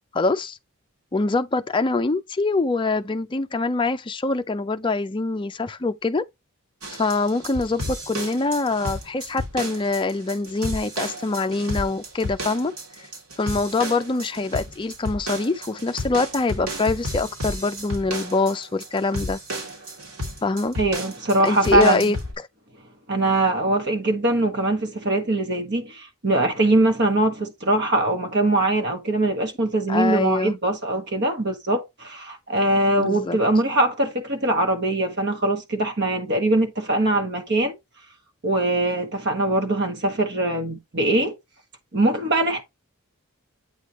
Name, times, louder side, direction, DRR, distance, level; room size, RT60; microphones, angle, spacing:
voice 1, 0.1-0.6 1.1-6.2 6.9-12.7 13.4-19.4 20.4-20.8 21.4-22.2 29.9-30.5 33.0-33.4, left 3 dB, 25° left, 0.4 m, -24 dB
sound 1, 6.8-22.3, equal, 80° right, 2.8 m, -33 dB
voice 2, 20.8-22.0 23.1-37.8 38.4-41.4 41.9-42.6, right 2 dB, 55° right, 1.5 m, -22 dB
8.4 x 3.2 x 4.1 m
head